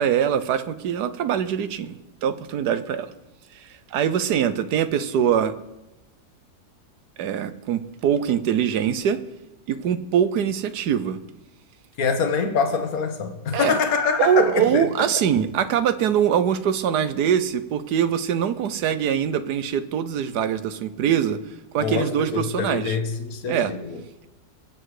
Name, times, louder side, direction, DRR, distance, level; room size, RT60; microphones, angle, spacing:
voice 1, 0.0-3.1 3.5-5.5 7.2-9.2 9.7-11.2 13.5-13.8 14.2-21.4 21.7-23.0 23.5-23.7, right 9 dB, 90° right, 12 dB, 1.4 m, -23 dB
voice 2, 12.0-14.9 21.8-24.0, left 5 dB, 65° left, 7 dB, 1.7 m, -24 dB
23.0 x 8.0 x 4.9 m, 0.98 s
omnidirectional pair, 1.7 m